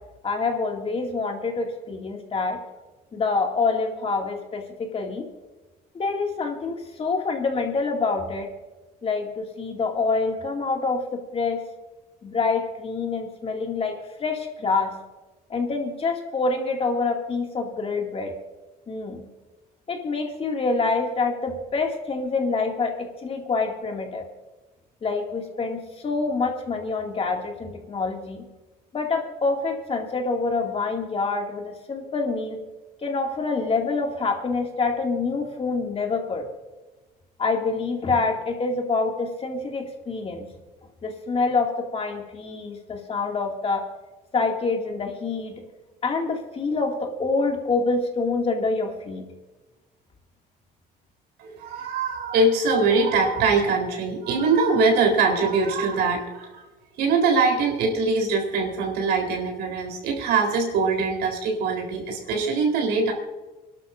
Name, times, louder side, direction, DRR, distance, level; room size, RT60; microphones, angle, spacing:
voice 1, 0.2-2.6 3.1-5.3 5.9-8.5 9.0-11.6 12.2-15.0 15.5-18.3 18.9-19.3 19.9-24.3 25.0-28.4 28.9-32.7 33.0-36.5 37.4-40.5 41.0-43.9 44.3-45.6 46.0-49.2, left 4 dB, 35° left, 2 dB, 2.3 m, -26 dB
voice 2, 51.4-56.6 57.0-63.1, right 4 dB, 80° right, 1 dB, 3.9 m, -22 dB
28.5 x 12.0 x 2.6 m, 1.1 s
cardioid pair, 110°, 17 cm